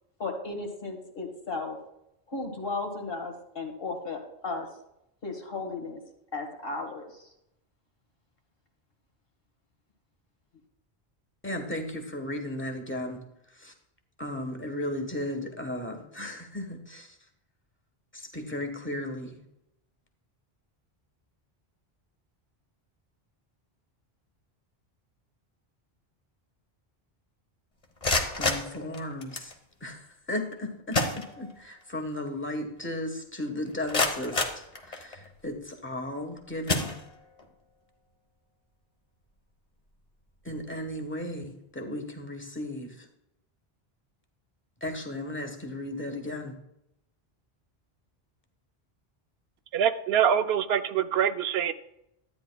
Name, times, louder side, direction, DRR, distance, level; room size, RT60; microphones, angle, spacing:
voice 1, 0.2-1.8 2.3-4.7 5.2-6.0 6.3-7.3, left 3 dB, 65° left, 3 dB, 1.9 m, -35 dB
voice 2, 11.4-13.2 13.5-13.7 14.2-17.1 18.1-19.4 28.4-29.5 29.8-36.9 40.4-43.1 44.8-46.6, left 1 dB, 10° left, 4 dB, 1.2 m, -35 dB
sound 1, 27.8-29.5 30.5-30.6 30.9-31.8 32.2-32.3 32.8-32.9 33.5-35.3 36.0-36.2 36.6-37.5, left 2 dB, 40° left, 1.2 m, -30 dB
voice 3, 49.7-51.7, right 8 dB, 80° right, 10 dB, 0.8 m, -24 dB
13.0 x 9.3 x 2.3 m, 0.81 s
omnidirectional pair, 1.0 m